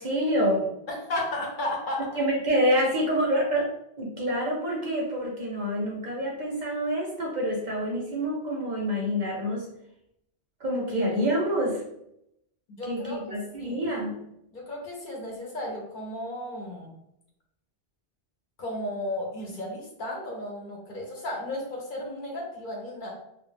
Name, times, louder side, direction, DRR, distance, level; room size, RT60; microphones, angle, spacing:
voice 1, 0.0-0.7 2.2-9.7 10.6-11.8 12.9-14.2, equal, 50° right, -2 dB, 0.6 m, -27 dB
voice 2, 0.9-2.2 12.7-13.8 14.5-17.0 18.6-23.1, left 1 dB, 55° left, -1 dB, 0.7 m, -34 dB
2.4 x 2.1 x 3.2 m, 0.80 s
omnidirectional pair, 1.1 m